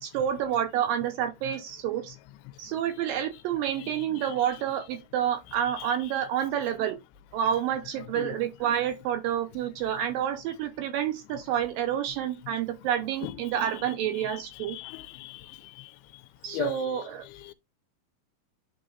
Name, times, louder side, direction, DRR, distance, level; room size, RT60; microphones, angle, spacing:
voice 1, 0.0-2.2 2.6-7.0 7.3-14.8 16.4-17.2, right 10 dB, 75° right, 2.2 m, -29 dB
voice 2, 3.8-4.3 5.8-5.9 8.2-8.3 13.2-13.3 14.2-14.4 14.7-15.3 16.5-17.0 17.5-17.6, left 16 dB, 80° left, 2.4 m, -37 dB
11.0 x 3.8 x 2.4 m
omnidirectional pair, 4.7 m